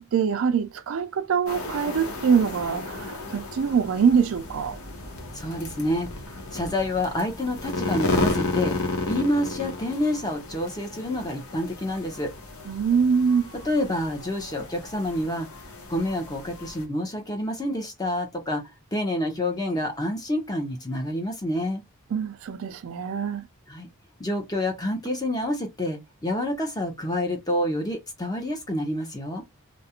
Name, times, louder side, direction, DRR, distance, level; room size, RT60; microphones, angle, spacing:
voice 1, 0.0-4.8 12.7-13.5 22.1-23.4, right 6 dB, 70° right, 0.4 m, -24 dB
sound 1, 1.5-16.8, left 3 dB, 85° left, 0.8 m, -33 dB
voice 2, 5.3-6.1 6.5-8.7 9.1-12.3 13.6-15.5 15.9-18.6 18.9-21.8 23.7-23.9 24.2-29.4, left 1 dB, 15° left, 0.6 m, -28 dB
2.4 x 2.0 x 2.8 m
head